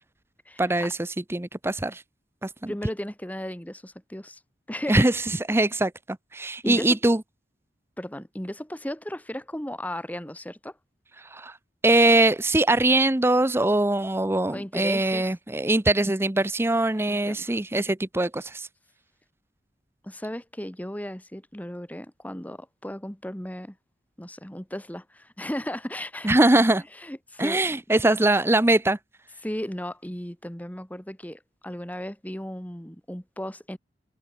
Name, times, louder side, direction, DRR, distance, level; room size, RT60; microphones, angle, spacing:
voice 1, 0.6-2.0 2.4-2.7 4.9-5.2 5.5-7.2 11.3-11.6 11.8-18.7 26.2-26.8 27.4-29.0, right 2 dB, 15° right, 0.7 m, -22 dB
voice 2, 2.7-4.4 4.7-5.1 6.6-7.0 8.0-10.8 14.5-15.3 17.1-17.6 20.0-23.8 24.2-26.3 27.0-27.8 29.4-33.8, equal, 10° left, 1.6 m, -35 dB
head